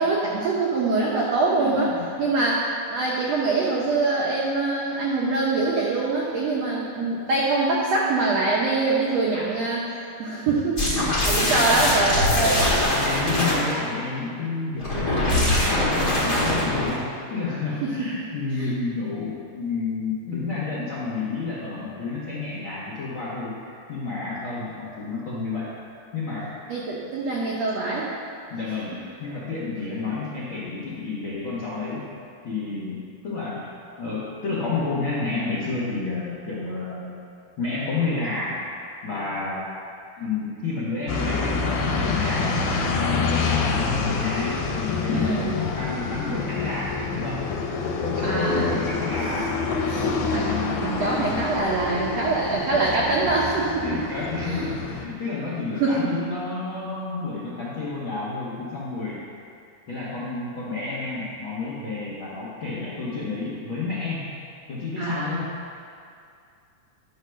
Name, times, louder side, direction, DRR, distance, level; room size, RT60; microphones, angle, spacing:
voice 1, 0.0-1.9 2.2-12.7 17.8-18.1 18.6-18.7 26.7-28.1 45.1-45.7 48.2-48.7 49.9-50.5 50.8-53.9 54.4-54.6 55.8-56.1 65.0-65.5, right 3 dB, 85° right, -4 dB, 1.4 m, -24 dB
voice 2, 1.6-2.1 11.3-11.9 12.9-25.7 26.1-26.5 28.5-32.1 32.4-33.6 34.0-37.1 37.6-38.6 39.0-39.6 40.2-42.5 43.0-47.5 47.8-50.8 51.0-51.5 53.2-53.4 53.8-59.2 59.9-64.3 64.7-65.5, left 3 dB, 70° left, -8 dB, 1.2 m, -30 dB
sound 1, 10.8-13.7 14.8-17.0, left 1 dB, 35° left, 1.2 m, -22 dB
sound 2, 41.1-55.1, left 4 dB, 90° left, 2.8 m, -27 dB
11.0 x 4.7 x 6.3 m, 2.4 s
omnidirectional pair, 4.3 m